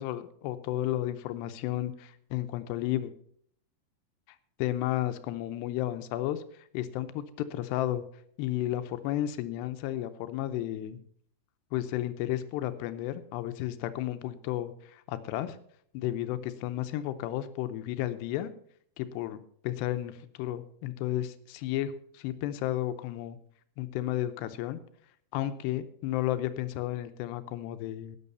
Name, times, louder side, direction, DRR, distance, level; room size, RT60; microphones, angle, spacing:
voice 1, 0.0-3.1 4.6-6.4 6.7-8.0 8.4-11.0 11.7-15.6 15.9-18.5 19.0-23.4 23.8-24.8 25.3-28.2, left 13 dB, 90° left, 11 dB, 2.9 m, -33 dB
12.5 x 9.2 x 5.4 m, 0.63 s
omnidirectional pair, 4.8 m